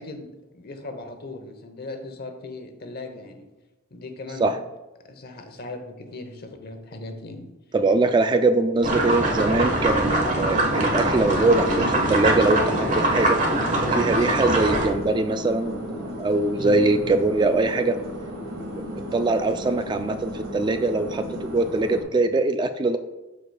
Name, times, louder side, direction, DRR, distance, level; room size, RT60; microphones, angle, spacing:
voice 1, 0.0-3.5 3.9-4.5 5.0-7.5 16.5-16.8, left 2 dB, 50° left, 6 dB, 0.9 m, -38 dB
voice 2, 7.7-13.4 13.9-17.9 18.8-18.9 19.1-23.0, right 2 dB, 20° right, 8 dB, 0.3 m, -22 dB
sound 1, 8.8-14.9, right 1 dB, 40° right, 1.3 m, -23 dB
sound 2, 10.7-22.0, left 1 dB, 85° right, 1.9 m, -35 dB
13.0 x 4.7 x 2.3 m, 1.1 s
head